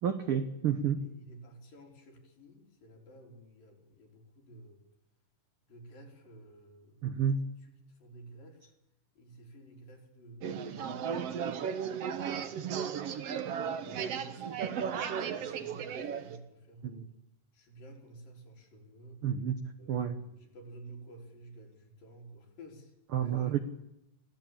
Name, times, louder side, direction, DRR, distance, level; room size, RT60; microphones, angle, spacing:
voice 1, 0.0-1.0 7.0-7.5 16.8-17.1 19.2-19.6 19.9-20.2 23.1-23.6, right 8 dB, 80° right, 10 dB, 1.2 m, -30 dB
voice 2, 1.0-4.8 5.6-7.3 7.6-8.7 9.2-11.5 13.8-17.0 17.5-19.2 19.8-23.6, right 2 dB, 85° left, 1 dB, 5.4 m, -53 dB
sound 1, 10.4-16.4, right 7 dB, 55° right, 2.0 m, -35 dB
24.5 x 16.0 x 8.9 m, 0.88 s
omnidirectional pair, 3.9 m